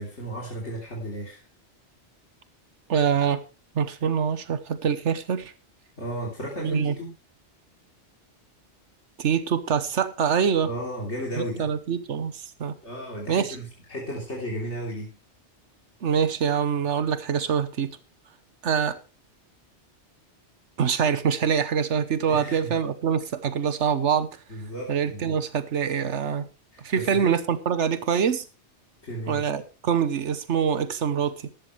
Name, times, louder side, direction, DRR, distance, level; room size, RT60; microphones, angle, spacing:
voice 1, 0.0-1.4 6.0-7.1 10.6-11.7 12.8-15.2 22.3-22.8 24.5-25.4 26.7-27.3 29.0-29.5, right 1 dB, 75° left, 3.8 m, -34 dB
voice 2, 2.9-3.4 3.7-5.5 6.6-6.9 9.2-10.7 11.4-12.7 13.3-13.6 16.0-18.0 18.6-19.0 20.8-24.3 24.9-26.5 26.8-28.4 29.3-31.5, right 7 dB, 90° right, 1.4 m, -25 dB
15.0 x 12.0 x 3.3 m
omnidirectional pair, 1.2 m